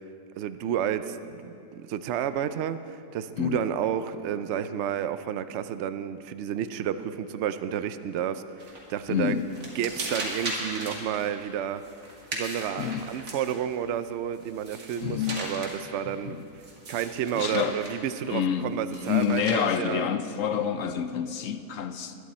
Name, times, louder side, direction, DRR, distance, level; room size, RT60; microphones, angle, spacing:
voice 1, 0.4-8.6 8.9-9.4 9.8-11.8 12.3-16.6 16.9-20.0, right 9 dB, 70° right, 11 dB, 0.6 m, -31 dB
voice 2, 3.4-3.7 9.1-9.5 12.8-13.1 15.0-15.5 16.1-16.4 17.3-17.8 18.3-22.2, left 8 dB, 65° left, 9 dB, 0.8 m, -28 dB
sound 1, 8.6-9.0 9.3-13.8 14.3-15.9 16.6-18.1 18.9-19.6, right 1 dB, 50° right, 2.5 m, -37 dB
20.5 x 11.5 x 4.3 m, 2.5 s
omnidirectional pair, 1.8 m